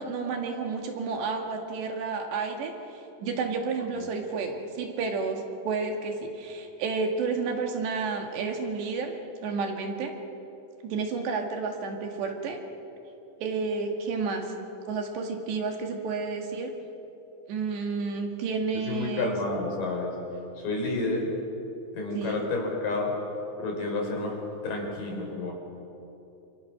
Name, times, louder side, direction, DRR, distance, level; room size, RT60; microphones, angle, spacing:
voice 1, 0.0-10.2 10.8-12.6 13.4-14.5 14.9-16.7 17.5-19.4 22.1-22.4, right 4 dB, 80° right, 3 dB, 4.3 m, -31 dB
voice 2, 18.9-20.1 20.6-21.3 21.9-23.1 23.6-24.3 24.6-25.5, left 2 dB, 50° left, 1 dB, 6.2 m, -30 dB
28.5 x 28.0 x 6.3 m, 2.9 s
omnidirectional pair, 5.0 m